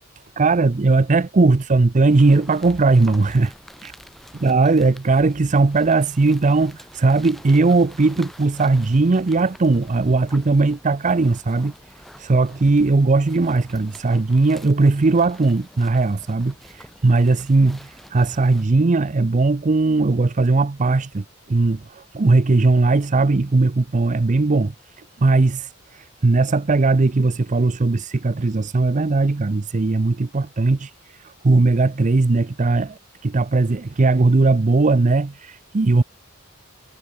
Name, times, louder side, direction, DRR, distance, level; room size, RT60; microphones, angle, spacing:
voice 1, 0.4-3.5 3.8-3.9 4.4-11.7 12.2-24.7 25.2-30.9 31.2-36.0, right 3 dB, 35° right, 0.6 m, -18 dB
sound 1, 2.1-18.7, equal, ahead, 6.8 m, -47 dB
head